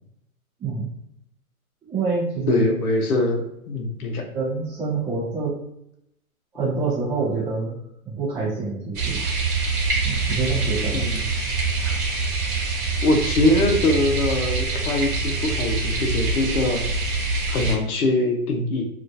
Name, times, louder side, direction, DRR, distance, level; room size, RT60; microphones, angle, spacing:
voice 1, 1.8-2.7 4.3-5.5 6.5-7.8 8.0-9.2 10.0-11.1, right 4 dB, 5° right, -15 dB, 0.4 m, -26 dB
voice 2, 2.5-4.2 10.9-11.2 12.5-12.7 13.0-16.8 17.5-18.8, left 2 dB, 80° left, 1 dB, 0.8 m, -22 dB
sound 1, 8.9-17.8, right 3 dB, 35° right, 1.0 m, -25 dB
2.8 x 2.4 x 2.5 m, 0.77 s
hypercardioid pair, 140°, 43 cm